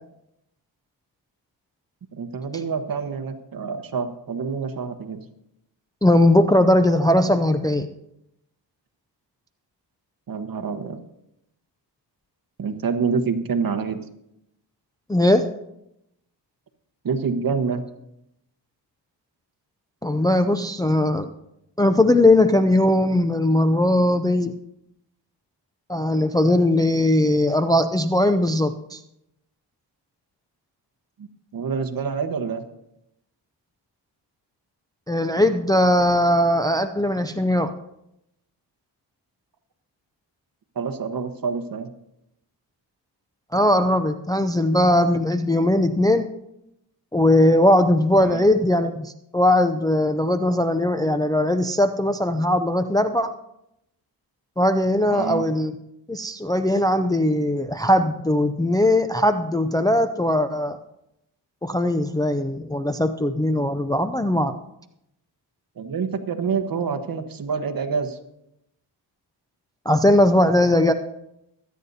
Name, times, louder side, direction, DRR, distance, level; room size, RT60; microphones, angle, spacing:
voice 1, 2.1-5.2 10.3-11.0 12.6-14.0 17.0-17.8 31.2-31.3 31.5-32.6 40.7-41.9 48.2-48.5 55.1-55.5 65.8-68.2, right 5 dB, 50° right, 8 dB, 1.2 m, -27 dB
voice 2, 6.0-7.9 15.1-15.5 20.0-21.3 21.8-24.5 25.9-29.0 35.1-37.7 43.5-46.3 47.1-53.3 54.6-55.7 56.1-60.8 61.6-64.5 69.9-70.9, left 1 dB, 10° left, 8 dB, 0.4 m, -19 dB
24.0 x 9.3 x 2.7 m, 0.82 s
cardioid pair, 105°, 44 cm